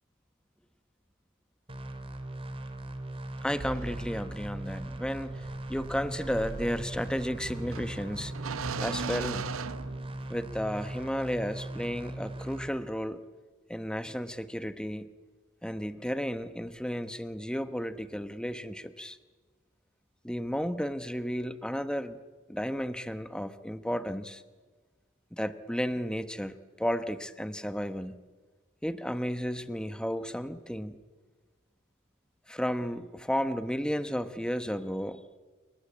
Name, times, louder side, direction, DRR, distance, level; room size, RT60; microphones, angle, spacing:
sound 1, 1.7-12.7, right 1 dB, 25° right, 2.6 m, -39 dB
voice 1, 3.4-8.3 8.8-9.5 10.3-13.2 13.7-15.1 15.6-19.2 20.2-22.2 22.5-24.4 25.3-28.1 28.8-31.0 32.5-35.2, equal, 5° left, 11 dB, 1.0 m, -33 dB
sound 2, 3.6-10.5, right 4 dB, 70° right, 0.8 m, -39 dB
28.5 x 22.5 x 8.4 m, 1.4 s
head